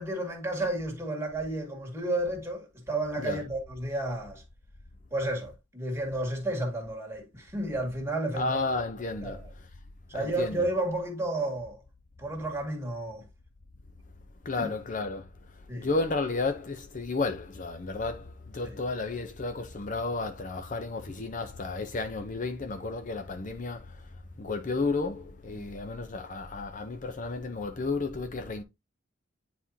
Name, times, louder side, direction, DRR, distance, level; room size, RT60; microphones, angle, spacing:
voice 1, 0.0-4.4 5.1-8.6 9.2-9.5 10.1-11.8 12.2-13.3 14.6-14.7 15.7-15.9 18.6-18.8 25.6-25.7, right 1 dB, 15° right, 2.0 m, -32 dB
voice 2, 8.3-9.7 10.1-10.6 14.4-28.6, left 3 dB, 40° left, 0.6 m, -33 dB
9.5 x 4.3 x 2.7 m
head